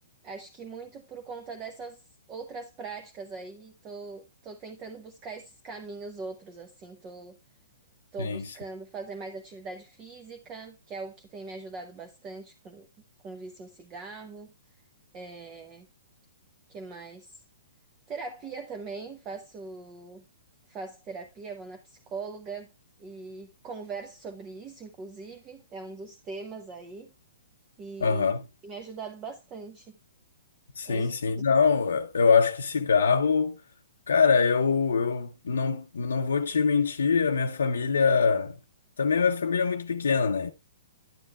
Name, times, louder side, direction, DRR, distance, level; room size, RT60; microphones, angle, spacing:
voice 1, 0.2-2.0 2.3-7.4 8.1-12.9 13.2-14.5 15.1-15.9 16.7-17.4 18.1-20.2 20.7-22.7 23.0-27.1 27.8-28.3 28.6-30.0 30.9-31.5, right 4 dB, 25° right, 0.8 m, -41 dB
voice 2, 8.2-8.5 28.0-28.4 30.8-33.6 34.1-38.5 39.0-40.5, left 5 dB, 85° left, 0.6 m, -24 dB
11.0 x 7.5 x 2.4 m
hypercardioid pair, 145°, 0 cm